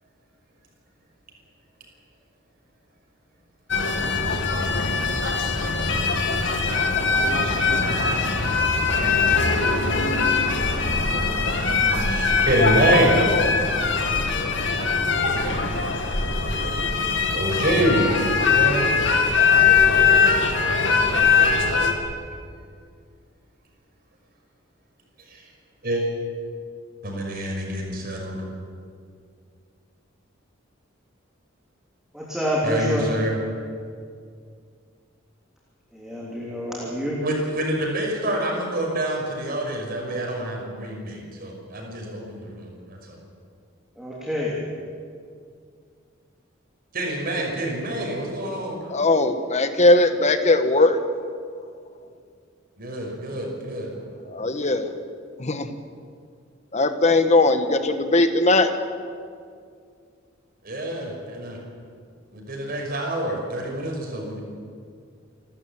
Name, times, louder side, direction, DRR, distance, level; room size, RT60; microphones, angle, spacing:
sound 1, 3.7-21.9, left 5 dB, 65° left, 2.4 m, -21 dB
voice 1, 12.0-13.2 16.9-18.9 25.2-25.5 25.8-26.0 27.0-28.5 32.6-33.4 37.2-43.2 46.9-49.0 52.8-53.9 60.6-61.6 62.3-64.4, right 1 dB, 50° right, 0 dB, 6.0 m, -26 dB
voice 2, 32.1-33.1 35.9-37.2 44.0-44.6, equal, ahead, -5 dB, 3.3 m, -27 dB
voice 3, 48.9-51.0 54.3-54.9 55.4-55.7 56.7-58.7, left 2 dB, 35° left, 9 dB, 1.4 m, -19 dB
29.0 x 13.0 x 9.0 m, 2.2 s
head